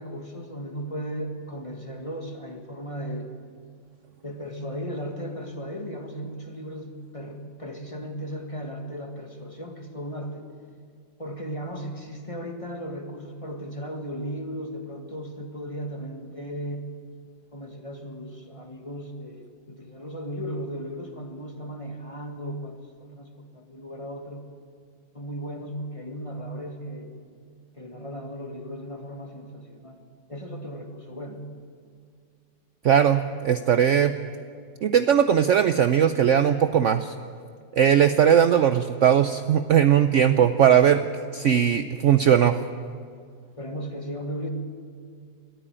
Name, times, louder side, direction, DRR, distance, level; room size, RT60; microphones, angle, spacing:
voice 1, 0.0-3.3 4.2-10.5 11.2-16.8 17.5-24.4 25.1-27.1 27.8-30.0 30.3-31.5 43.6-44.5, equal, 20° left, 3 dB, 1.6 m, -36 dB
voice 2, 32.8-34.1 34.8-37.1 37.7-41.1 41.3-42.6, right 9 dB, 75° right, 10 dB, 0.7 m, -19 dB
21.0 x 14.0 x 8.8 m, 2.1 s
omnidirectional pair, 2.0 m